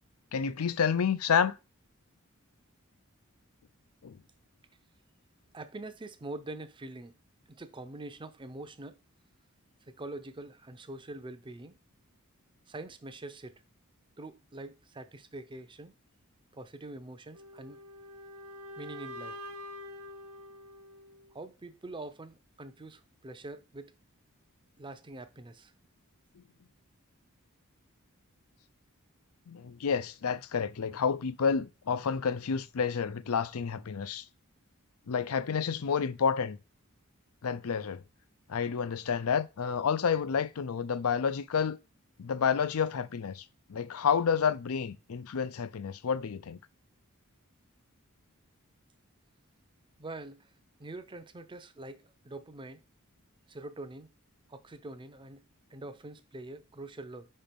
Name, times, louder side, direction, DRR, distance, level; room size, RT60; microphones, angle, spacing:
voice 1, 0.3-1.5 4.0-4.2 29.5-34.2 35.1-36.6 37.4-38.0 38.5-41.8 42.2-43.4 43.7-46.6, left 6 dB, 75° left, 0.5 m, -29 dB
voice 2, 5.5-7.2 7.5-9.0 9.9-11.8 12.7-13.6 14.2-15.9 16.5-17.8 18.8-19.4 21.3-23.9 24.8-25.7 50.0-50.5 50.8-52.8 53.5-54.1 54.5-55.4 55.7-57.3, right 2 dB, 20° right, 0.6 m, -44 dB
sound 1, 17.3-21.3, left 1 dB, 85° right, 1.2 m, -46 dB
5.1 x 4.4 x 5.2 m
head